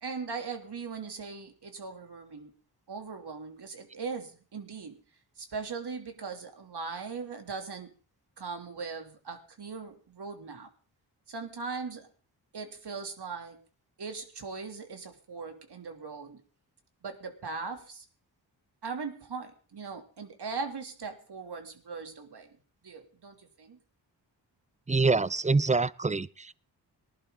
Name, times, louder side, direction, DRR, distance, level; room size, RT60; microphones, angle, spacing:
voice 1, 0.0-2.5 2.9-5.0 5.4-7.9 8.4-10.7 11.3-12.1 12.5-13.6 14.0-16.4 17.0-18.0 18.8-22.6 22.8-23.8, right 4 dB, 60° right, 5 dB, 3.2 m, -39 dB
voice 2, 24.9-26.5, right 3 dB, 15° right, 21 dB, 0.6 m, -25 dB
19.5 x 11.0 x 3.9 m, 0.37 s
cardioid pair, 50°, 45 cm